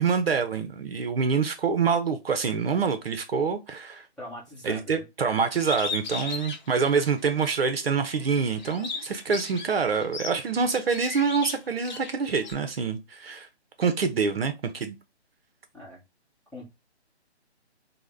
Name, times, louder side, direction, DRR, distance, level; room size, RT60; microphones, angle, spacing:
voice 1, 0.0-4.1 4.6-13.5 13.8-15.0, right 5 dB, 60° right, 0.7 m, -26 dB
voice 2, 4.2-5.0 15.7-16.0 16.5-16.6, left 1 dB, ahead, 1.0 m, -41 dB
Bird, 5.6-7.6 8.0-12.5, left 4 dB, 40° left, 0.8 m, -36 dB
3.5 x 2.1 x 3.2 m
figure-of-eight pair, 150°, 34 cm